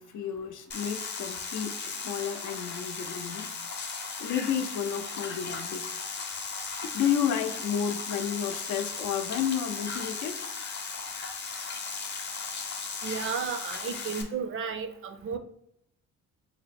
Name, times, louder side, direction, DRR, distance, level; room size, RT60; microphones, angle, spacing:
voice 1, 0.0-3.5 4.2-5.8 6.9-10.3, left 8 dB, 80° left, 6 dB, 0.5 m, -31 dB
sound 1, 0.7-14.2, left 5 dB, 35° left, 0.6 m, -36 dB
voice 2, 13.0-15.4, right 6 dB, 45° right, 9 dB, 0.4 m, -33 dB
3.4 x 2.1 x 4.1 m, 0.72 s
cardioid pair, 90°, 30 cm